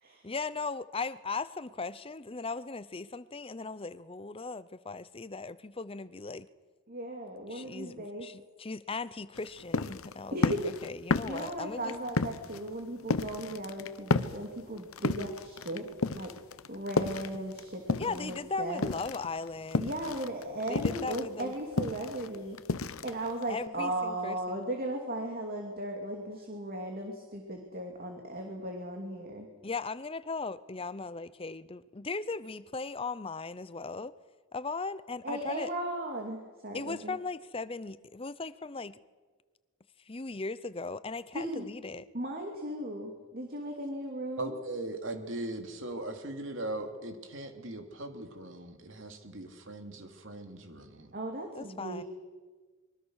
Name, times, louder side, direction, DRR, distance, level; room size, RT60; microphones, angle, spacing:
voice 1, 0.2-6.5 7.5-11.9 18.0-19.9 20.7-21.5 23.5-24.6 29.6-34.1 34.5-35.7 36.7-39.0 40.1-42.1 51.5-52.0, left 4 dB, 25° left, 16 dB, 0.7 m, -38 dB
voice 2, 6.9-8.3 10.3-10.6 11.2-15.9 16.1-16.3 16.7-18.9 19.8-22.6 23.0-29.5 35.2-37.1 41.3-41.7 42.1-44.6 51.1-52.0, right 1 dB, 45° right, 2 dB, 2.7 m, -37 dB
sound 1, 9.3-18.4 18.7-23.7, left 3 dB, 85° left, 0.9 m, -32 dB
voice 3, 44.4-51.1, right 2 dB, 65° right, 5 dB, 2.9 m, -39 dB
25.5 x 23.0 x 6.5 m, 1.4 s
head